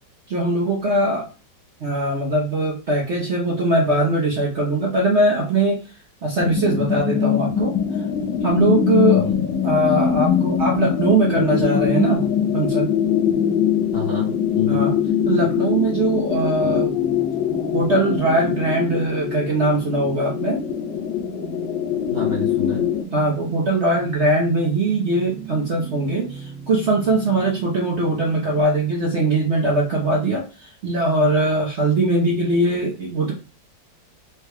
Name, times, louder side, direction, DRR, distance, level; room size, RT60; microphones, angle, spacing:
voice 1, 0.3-1.3 1.8-5.8 6.2-7.7 8.4-9.3 9.6-12.2 12.5-12.9 14.7-14.9 15.2-16.9 17.7-20.6 23.1-33.3, right 2 dB, 55° right, -2 dB, 0.8 m, -21 dB
sound 1, 6.4-23.0, left 8 dB, 80° left, 1.3 m, -22 dB
voice 2, 9.1-9.4 13.9-14.9 22.1-22.9, left 4 dB, 45° left, -4 dB, 0.8 m, -28 dB
sound 2, 11.2-28.6, right 6 dB, 70° right, 1.6 m, -37 dB
4.6 x 2.3 x 3.2 m, 0.32 s
omnidirectional pair, 2.0 m